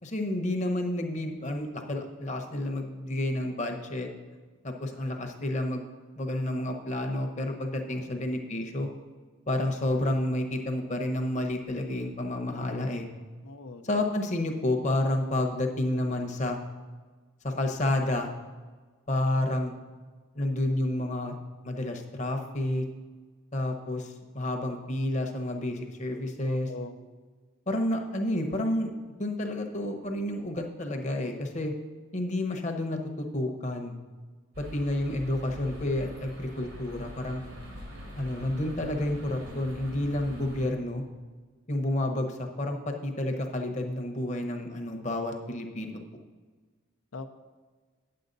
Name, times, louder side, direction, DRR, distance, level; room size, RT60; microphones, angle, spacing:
voice 1, 0.0-4.1 4.6-5.8 6.2-8.9 9.5-13.1 13.8-16.6 17.4-18.3 19.1-19.7 20.3-21.3 21.6-22.8 23.5-26.7 27.7-28.9 29.2-31.7 32.1-34.0 34.6-37.4 38.1-41.0 41.7-46.0, left 1 dB, 35° left, 4 dB, 0.9 m, -30 dB
voice 2, 7.9-8.2 13.4-14.0 26.5-27.0 36.5-36.9 47.1-47.3, left 3 dB, 80° left, 7 dB, 0.7 m, -43 dB
sound 1, 34.5-40.7, equal, 80° right, 2.2 m, -43 dB
9.3 x 7.8 x 4.0 m, 1.4 s
head